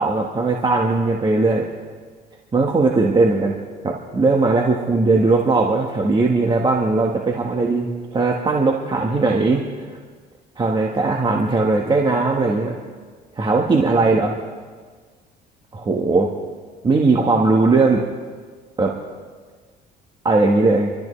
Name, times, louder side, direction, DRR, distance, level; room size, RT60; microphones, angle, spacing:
voice 1, 0.0-1.7 2.5-3.6 3.8-10.0 10.6-12.7 13.3-14.3 15.7-16.3 16.8-18.0 18.8-19.0 20.2-20.9, right 3 dB, 30° right, -1 dB, 1.5 m, -19 dB
26.5 x 13.5 x 3.3 m, 1.5 s
cardioid pair, 100°, 18 cm